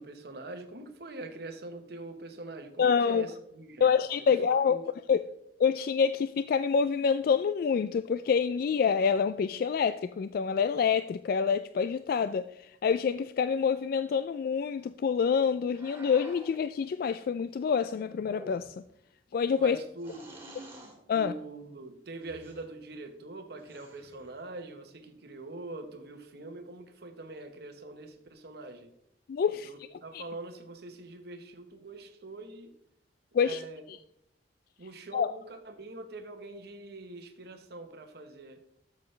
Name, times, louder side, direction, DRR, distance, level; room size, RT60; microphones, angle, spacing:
voice 1, 0.0-3.9 4.2-4.3 4.6-4.8 19.6-20.3 21.1-28.9 29.6-32.7 33.4-33.8 34.8-38.8, right 2 dB, 65° right, 6 dB, 1.1 m, -44 dB
voice 2, 2.8-3.3 3.8-4.8 5.1-5.2 5.6-18.7 19.3-19.8 21.1-21.3 29.3-29.7 30.1-30.2 33.3-33.6 35.1-35.3, left 6 dB, 55° left, 12 dB, 0.3 m, -27 dB
sound 1, 15.7-16.6 18.1-18.9 20.0-21.0 22.2-22.7 23.6-24.3, right 1 dB, 15° right, 2.0 m, -49 dB
12.5 x 7.2 x 3.2 m, 0.77 s
head